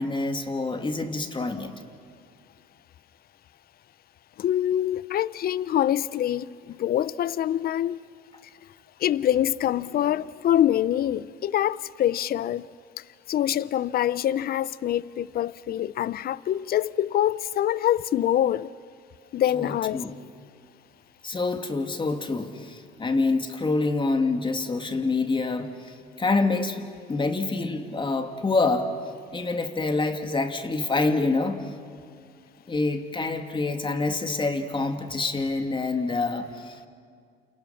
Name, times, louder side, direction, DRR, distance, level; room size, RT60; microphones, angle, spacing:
voice 1, 0.0-1.8 19.6-20.2 21.2-28.9 29.3-31.7 32.7-36.9, left 3 dB, 25° left, 2.6 m, -27 dB
voice 2, 4.4-8.0 9.0-12.7 13.3-18.7 19.3-20.0, left 11 dB, 45° left, 0.6 m, -25 dB
29.0 x 28.5 x 5.9 m
supercardioid pair, 75°, 21 cm